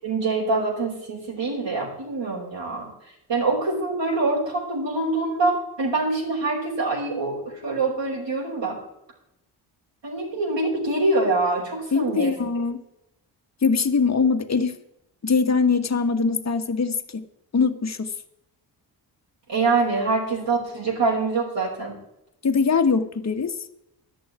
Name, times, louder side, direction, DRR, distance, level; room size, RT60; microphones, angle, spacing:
voice 1, 0.0-2.9 3.3-8.8 10.0-12.4 19.5-22.0, right 3 dB, 60° right, -4 dB, 5.7 m, -25 dB
voice 2, 11.9-12.8 13.6-14.8 15.2-17.2 17.5-18.1 22.4-23.6, left 5 dB, 30° left, 7 dB, 1.5 m, -22 dB
11.0 x 7.2 x 9.5 m, 0.85 s
hypercardioid pair, 45°, 50 cm